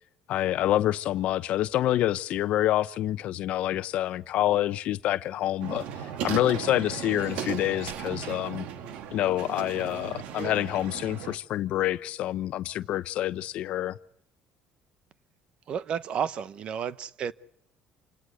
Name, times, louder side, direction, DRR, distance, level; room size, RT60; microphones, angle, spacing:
voice 1, 0.3-5.9 6.2-8.6 9.1-14.0, left 13 dB, 65° left, 0.9 m, -27 dB
sound 1, 5.6-11.4, right 9 dB, 70° right, 1.7 m, -36 dB
voice 2, 15.7-17.3, right 8 dB, 50° right, 1.0 m, -31 dB
28.5 x 18.0 x 7.8 m
cardioid pair, 120°, 2 cm